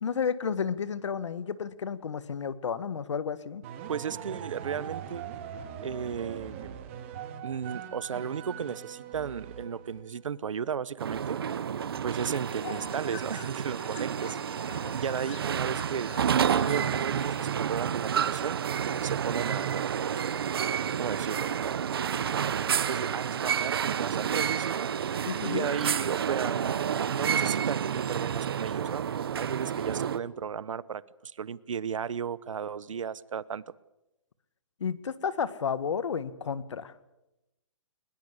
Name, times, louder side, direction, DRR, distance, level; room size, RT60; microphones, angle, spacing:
voice 1, 0.0-3.6 25.3-25.7 34.8-36.9, left 6 dB, 60° left, 16 dB, 1.5 m, -32 dB
sound 1, 3.6-10.1, right 8 dB, 25° right, 2.0 m, -41 dB
voice 2, 3.9-5.2 5.8-6.8 7.4-11.4 12.0-14.4 14.9-16.1 16.5-18.6 19.0-19.8 21.0-22.0 22.9-24.9 25.4-26.8 27.1-29.0 29.3-33.6, right 7 dB, 70° right, 20 dB, 1.0 m, -34 dB
sound 2, 11.0-30.2, right 8 dB, 45° right, 1.0 m, -30 dB
sound 3, 12.2-17.5, left 9 dB, 20° left, 1.5 m, -47 dB
22.0 x 21.0 x 8.2 m, 0.92 s
hypercardioid pair, 175°, 17 cm